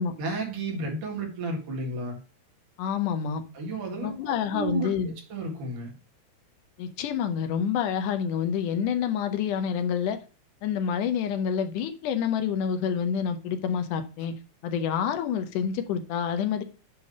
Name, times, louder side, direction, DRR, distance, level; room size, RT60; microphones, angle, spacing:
voice 1, 0.2-2.2 3.6-5.9, right 3 dB, 85° right, 3.5 m, -33 dB
voice 2, 2.8-3.4 4.0-5.1 6.8-10.2 10.6-14.3 14.6-16.6, left 7 dB, 85° left, 2.4 m, -28 dB
9.5 x 3.4 x 6.4 m
omnidirectional pair, 3.5 m